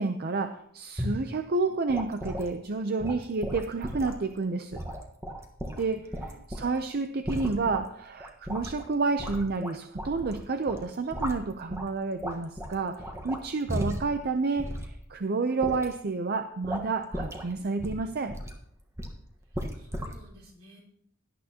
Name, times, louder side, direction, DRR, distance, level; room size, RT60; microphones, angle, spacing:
voice 1, 0.0-4.8 5.8-18.4, right 3 dB, 45° right, 8 dB, 0.6 m, -30 dB
sound 1, 1.0-1.3 1.9-2.5 3.0-4.2 4.7-6.8 7.2-7.8 8.2-8.8 9.2-10.4 10.7-11.9 12.2-14.2 14.6-14.9 15.6-15.9 16.6-16.9 17.1-17.5 17.8-18.6 19.0-19.2 19.5-20.2, equal, 15° right, 1.3 m, -35 dB
voice 2, 5.9-6.4 19.4-20.8, right 1 dB, 70° right, -1 dB, 3.7 m, -56 dB
17.0 x 11.0 x 2.9 m, 0.70 s
head